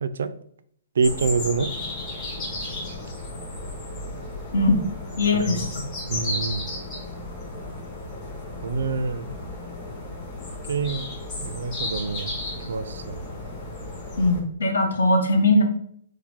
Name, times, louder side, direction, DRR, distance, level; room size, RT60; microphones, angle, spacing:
voice 1, 0.0-0.3 1.0-1.7 5.3-5.7 6.1-6.7 8.6-9.3 10.7-11.1 11.4-12.3 12.7-13.2, right 4 dB, 75° right, 12 dB, 0.3 m, -26 dB
sound 1, 1.0-14.4, left 2 dB, 20° left, 1.4 m, -34 dB
voice 2, 5.2-5.8 14.2-15.6, left 2 dB, 85° left, 3 dB, 0.9 m, -20 dB
4.7 x 2.0 x 3.6 m, 0.65 s
hypercardioid pair, 160°, 0 cm